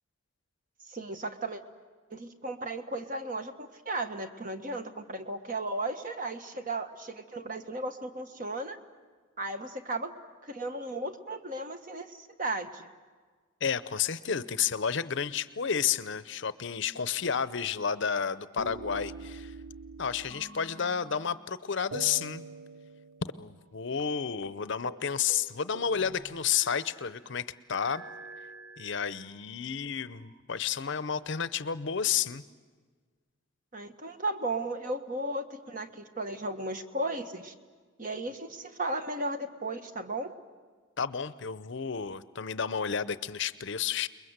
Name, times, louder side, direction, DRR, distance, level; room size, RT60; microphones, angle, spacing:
voice 1, 0.8-1.6 2.1-8.8 9.4-10.1 10.4-12.9 33.7-37.5 38.0-40.3, right 2 dB, 40° right, 7 dB, 1.4 m, -35 dB
voice 2, 13.6-19.5 20.0-22.4 23.4-28.0 28.8-32.4 41.0-44.1, left 7 dB, 60° left, 15 dB, 0.7 m, -31 dB
sound 1, 18.6-21.5 21.9-23.7 24.0-24.1 24.4-24.6 24.9-25.0 25.3-27.0 27.8-29.4 30.1-31.0, right 3 dB, 65° right, 1.0 m, -46 dB
29.0 x 21.5 x 8.0 m, 1.5 s
head